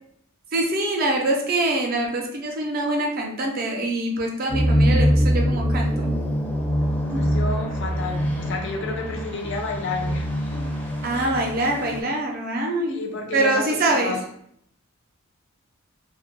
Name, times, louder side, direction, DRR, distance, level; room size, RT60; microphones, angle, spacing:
voice 1, 0.5-6.2 7.1-7.2 11.0-13.0 13.3-14.2, right 2 dB, 45° right, 1 dB, 0.5 m, -24 dB
sound 1, 4.5-12.0, equal, 10° left, 0.5 m, -24 dB
voice 2, 7.1-10.7 11.1-11.4 12.9-14.3, left 3 dB, 60° left, 2 dB, 0.5 m, -31 dB
2.2 x 2.1 x 2.9 m, 0.68 s
head